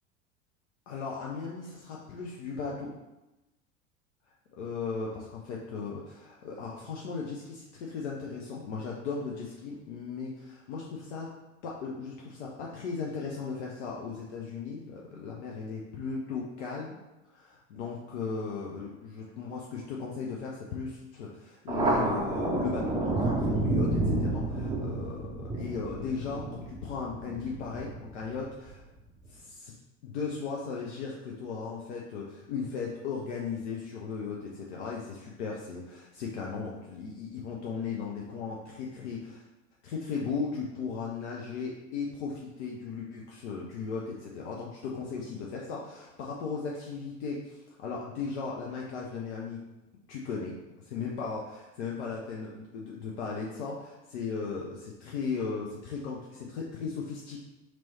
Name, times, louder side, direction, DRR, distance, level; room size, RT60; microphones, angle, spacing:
voice 1, 0.9-2.9 4.6-11.3 11.6-17.0 17.3-28.8 29.3-29.7 30.0-39.4 39.8-49.6 50.1-50.6 50.8-57.4, left 5 dB, 60° left, -2 dB, 0.6 m, -37 dB
Thunder, 21.7-28.7, right 2 dB, 15° right, 0.5 m, -30 dB
3.0 x 3.0 x 4.0 m, 1.0 s
figure-of-eight pair, 75°, 40 cm